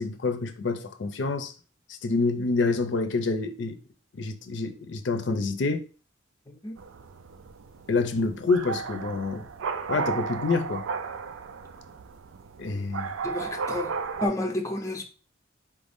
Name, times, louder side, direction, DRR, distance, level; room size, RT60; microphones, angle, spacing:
voice 1, 0.0-1.5 2.0-3.8 4.1-5.9 7.9-9.5 9.9-10.9 12.6-13.1, left 3 dB, 65° left, 0.5 m, -27 dB
voice 2, 6.5-6.8 13.2-13.9 14.2-15.0, left 1 dB, 15° left, 0.5 m, -30 dB
sound 1, 6.8-14.3, right 5 dB, 85° right, 0.4 m, -34 dB
4.5 x 2.6 x 3.5 m
head